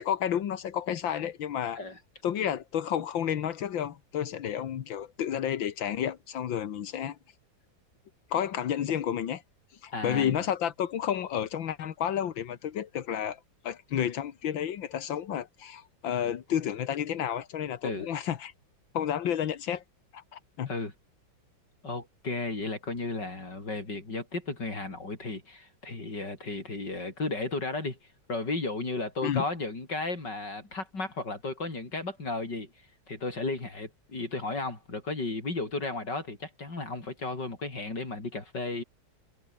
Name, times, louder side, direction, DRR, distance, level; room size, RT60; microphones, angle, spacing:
voice 1, 0.0-1.8 2.2-7.2 8.3-9.4 9.8-18.5 18.9-19.8 20.1-20.7 29.2-29.4, left 9 dB, 80° left, 2.0 m, -31 dB
voice 2, 9.9-10.4 17.8-18.1 20.7-20.9 21.8-28.0 28.3-32.7 33.1-38.8, left 3 dB, 65° left, 5.7 m, -34 dB
omnidirectional pair, 2.1 m